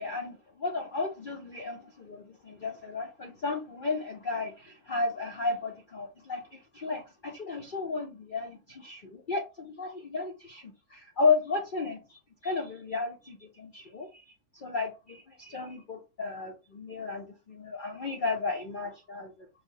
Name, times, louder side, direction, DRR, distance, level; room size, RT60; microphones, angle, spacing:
voice 1, 0.0-19.3, left 4 dB, 70° left, 0.4 m, -33 dB
4.9 x 2.0 x 2.7 m
omnidirectional pair, 1.6 m